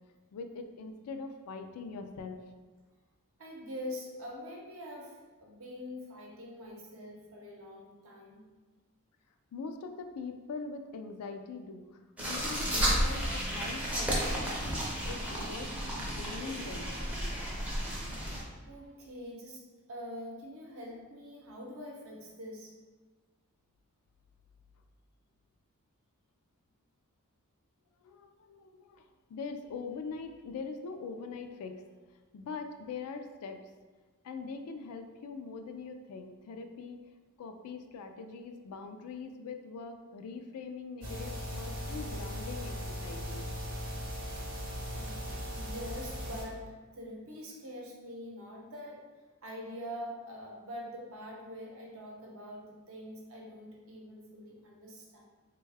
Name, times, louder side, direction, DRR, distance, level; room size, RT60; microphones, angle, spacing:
voice 1, 0.3-2.4 9.5-14.6 15.0-15.7 16.0-17.0 28.0-31.8 32.3-33.6 34.2-37.0 37.4-43.5, left 4 dB, 85° left, 6 dB, 0.3 m, -42 dB
voice 2, 3.4-8.5 18.4-19.6 19.9-22.7 44.9-49.0 49.4-55.2, equal, 65° right, -1 dB, 0.7 m, -44 dB
Ice skating in Annen, 12.2-18.4, equal, 5° right, 0.5 m, -32 dB
sound 1, 41.0-46.4, equal, 40° right, 0.8 m, -38 dB
3.4 x 2.2 x 3.2 m, 1.3 s
head